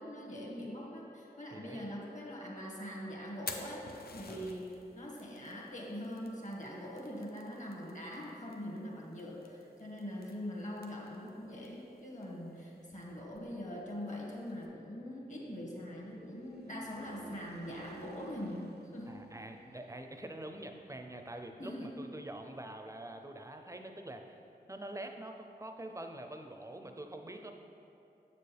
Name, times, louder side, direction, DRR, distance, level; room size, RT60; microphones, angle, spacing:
voice 1, 0.0-19.2 21.6-22.0, equal, 45° left, -2 dB, 1.5 m, -43 dB
voice 2, 1.5-1.9 4.3-4.5 19.1-24.4 24.7-27.5, right 1 dB, 20° right, 5 dB, 0.5 m, -45 dB
Fire, 3.2-14.7, left 4 dB, 65° left, 0.6 m, -52 dB
sound 1, 14.8-21.5, right 4 dB, 80° right, 0.5 m, -55 dB
6.9 x 6.8 x 3.4 m, 2.7 s
wide cardioid pair, 75°, 17 cm